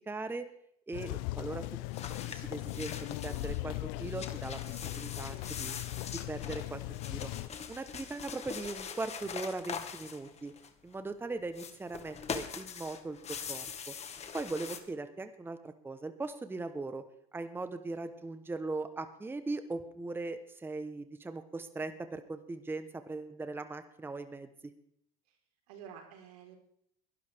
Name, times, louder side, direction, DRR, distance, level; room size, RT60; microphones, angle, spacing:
voice 1, 0.1-0.5 0.9-1.6 2.1-2.9 3.2-5.7 6.3-6.8 7.1-7.3 7.7-10.5 10.8-13.2 13.5-13.9 14.3-17.0 17.3-24.7, right 3 dB, 10° right, 10 dB, 1.0 m, -39 dB
sound 1, 0.9-7.5, left 19 dB, 70° left, 0.6 m, -39 dB
sound 2, 1.9-3.6 4.0-10.9 11.5-14.8, left 7 dB, 35° left, 1.7 m, -43 dB
voice 2, 25.7-26.6, right 8 dB, 80° right, 2 dB, 4.1 m, -51 dB
21.5 x 12.0 x 3.5 m, 0.71 s
supercardioid pair, 95°, 20 cm